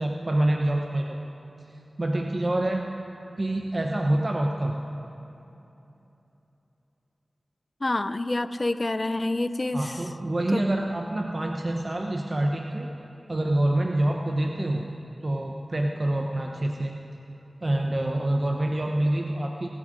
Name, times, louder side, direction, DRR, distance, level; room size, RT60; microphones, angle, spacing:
voice 1, 0.0-1.3 2.0-2.9 3.4-4.7 9.7-12.9 13.3-14.9 15.2-17.0 17.6-19.7, right 1 dB, 45° right, 1 dB, 0.9 m, -26 dB
voice 2, 7.8-10.0 10.5-10.6, left 2 dB, 40° left, 13 dB, 0.6 m, -27 dB
26.0 x 9.8 x 5.1 m, 3.0 s
wide cardioid pair, 55°, 0 cm